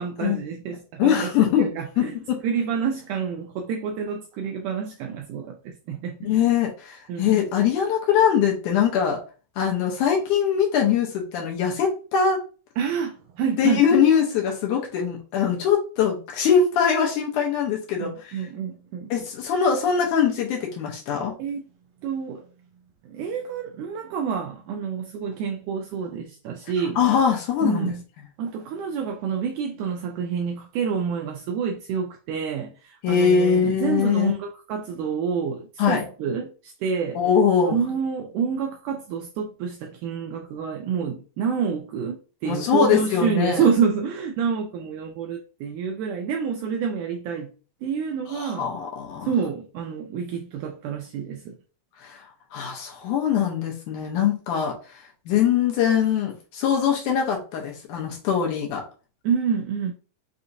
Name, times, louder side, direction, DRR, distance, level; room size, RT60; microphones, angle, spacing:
voice 1, 0.0-1.3 1.6-2.2 2.4-6.3 7.1-7.4 12.8-13.8 18.0-19.1 21.4-21.6 22.0-22.5 23.0-27.0 27.6-28.0 28.4-37.2 37.7-47.5 47.8-48.7 49.2-51.6 59.2-59.9, right 6 dB, 85° right, 1.8 m, -28 dB
voice 2, 1.0-2.4 6.2-9.2 9.6-12.4 13.6-18.4 19.1-21.3 27.0-27.9 33.0-34.3 35.8-36.1 37.2-37.7 42.5-43.7 48.3-49.3 52.0-52.2 52.5-54.7 55.3-58.8, left 7 dB, 75° left, 2.1 m, -22 dB
5.7 x 2.7 x 2.6 m
omnidirectional pair, 4.1 m